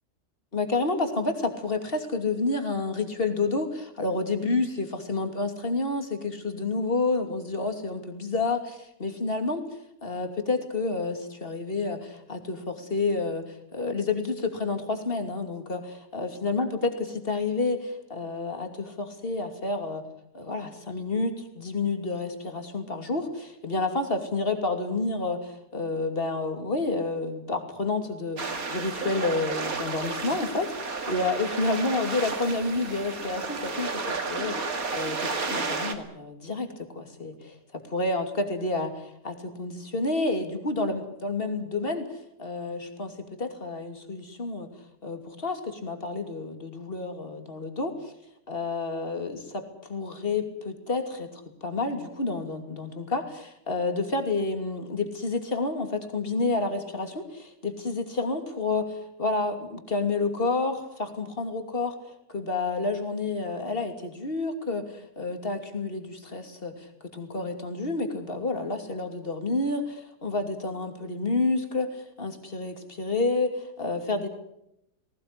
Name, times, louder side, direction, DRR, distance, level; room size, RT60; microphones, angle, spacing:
voice 1, 0.5-9.6 10.0-20.0 20.3-42.1 42.4-44.7 45.0-48.1 48.5-61.9 62.3-74.3, left 3 dB, 35° left, 6 dB, 3.0 m, -29 dB
sound 1, 28.4-36.0, right 4 dB, 55° right, 2.6 m, -32 dB
19.0 x 18.5 x 9.9 m, 0.81 s
omnidirectional pair, 1.8 m